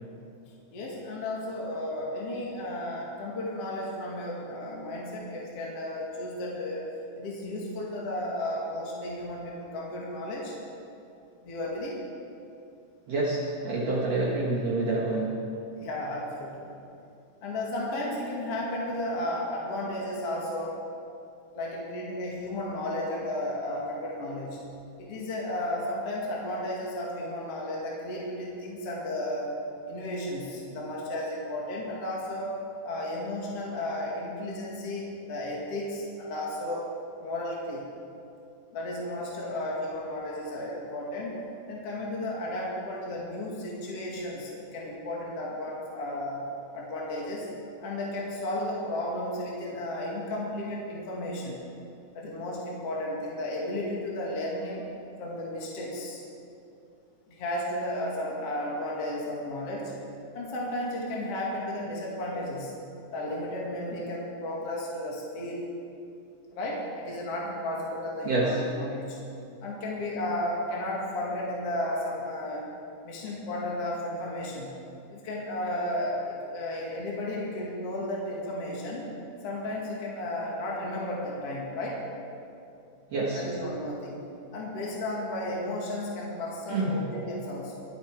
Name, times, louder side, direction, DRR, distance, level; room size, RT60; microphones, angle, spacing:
voice 1, 0.7-6.9 7.1-10.5 11.4-12.0 15.8-16.7 17.4-20.8 21.5-24.6 25.0-29.5 29.9-32.6 32.8-36.9 37.2-37.8 38.7-41.4 41.7-46.4 46.7-47.5 47.8-51.6 52.1-54.8 55.2-56.2 57.3-59.9 60.3-62.7 63.1-65.7 66.5-69.2 69.6-72.7 73.0-74.7 75.1-79.1 79.4-82.0 83.3-84.2 84.5-87.8, left 1 dB, 50° left, -4 dB, 2.9 m, -33 dB
voice 2, 13.1-15.3 68.2-68.6 83.1-83.4 86.7-87.0, right 2 dB, 55° right, -5 dB, 2.5 m, -27 dB
25.0 x 8.5 x 4.8 m, 2.7 s
omnidirectional pair, 3.8 m